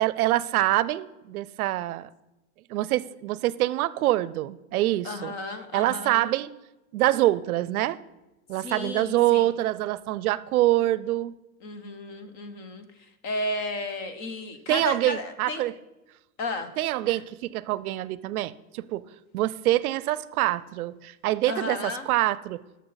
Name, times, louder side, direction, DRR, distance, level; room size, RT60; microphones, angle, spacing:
voice 1, 0.0-2.1 2.7-5.3 5.7-6.5 6.9-8.0 8.5-11.4 14.7-15.7 16.8-19.0 19.3-22.6, right 15 dB, 85° right, 19 dB, 0.6 m, -25 dB
voice 2, 5.0-6.3 8.6-9.5 11.6-15.7 16.4-16.7 17.0-17.2 21.5-22.1, left 2 dB, 25° left, 8 dB, 0.5 m, -34 dB
12.0 x 6.5 x 3.9 m, 1.0 s
supercardioid pair, 160°, 42 cm